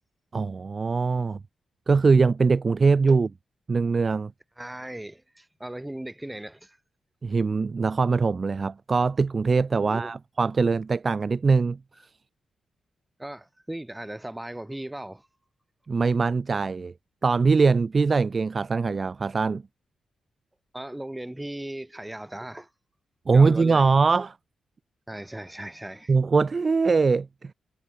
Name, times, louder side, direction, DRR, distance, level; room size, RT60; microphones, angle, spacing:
voice 1, 0.3-1.4 1.9-3.3 3.7-4.3 7.2-11.8 15.9-16.9 17.2-19.6 23.3-24.3 26.1-27.5, right 4 dB, 35° right, 0.4 m, -22 dB
voice 2, 4.6-6.8 9.8-10.2 13.2-15.3 20.7-22.7 23.3-23.9 25.1-26.1, right 1 dB, 10° right, 2.8 m, -37 dB
cardioid pair, 115°, 0 cm